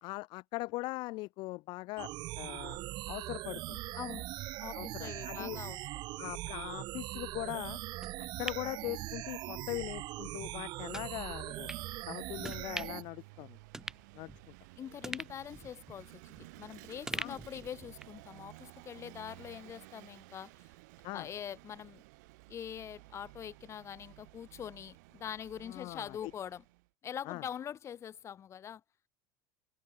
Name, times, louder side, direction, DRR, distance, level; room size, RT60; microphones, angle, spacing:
voice 1, 0.0-2.8 3.1-3.8 4.7-5.6 6.2-7.8 8.2-11.7 12.1-13.6 14.1-14.3 17.1-17.4 21.0-21.3 25.7-26.3 27.3-27.4, left 21 dB, 55° left, 0.9 m, -41 dB
sound 1, 2.0-13.0, right 18 dB, 50° right, 2.1 m, -41 dB
voice 2, 3.9-4.3 4.6-5.8 14.8-20.7 21.1-22.0 22.5-26.6 27.0-28.8, left 9 dB, 30° left, 2.4 m, -44 dB
sound 2, 8.0-9.6 10.0-10.1 10.9-11.1 11.7-11.8 12.4-13.1 13.4-13.5 13.7-14.6 15.0-16.6 17.1-18.2 18.6-18.7, right 2 dB, 5° right, 1.2 m, -43 dB
Vehicle / Engine, 10.2-26.9, right 24 dB, 75° right, 4.2 m, -55 dB
supercardioid pair, 140°, 10 cm